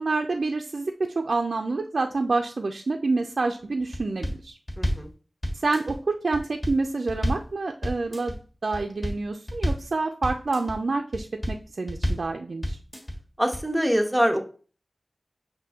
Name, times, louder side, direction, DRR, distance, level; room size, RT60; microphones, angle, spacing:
voice 1, 0.0-4.6 5.6-8.4 8.6-12.8, right 3 dB, 75° right, 3 dB, 0.3 m, -27 dB
sound 1, 3.9-4.4 4.7-5.1 5.4-6.0 6.3-6.8 7.1-7.5 7.8-8.4 8.7-9.2 9.5-9.9 10.2-10.8 11.1-11.6 11.9-12.3 12.6-13.2 13.5-13.6, equal, 35° left, 1.5 m, -29 dB
voice 2, 4.8-5.1 13.4-14.4, equal, 5° right, 3 dB, 0.8 m, -24 dB
5.9 x 2.6 x 3.5 m, 0.39 s
wide cardioid pair, 55°, 0 cm